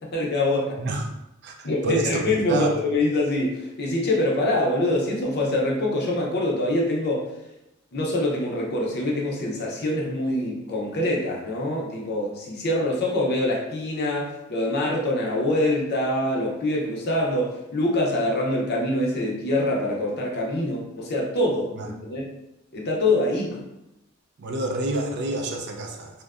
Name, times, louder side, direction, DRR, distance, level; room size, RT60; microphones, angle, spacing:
voice 1, 0.0-0.8 1.6-7.5 7.9-22.3 22.7-23.7, left 1 dB, 50° left, -2 dB, 0.5 m, -25 dB
voice 2, 1.4-2.7 21.8-21.9 24.4-26.2, right 2 dB, 50° right, 3 dB, 0.3 m, -28 dB
2.5 x 2.1 x 2.4 m, 0.89 s
head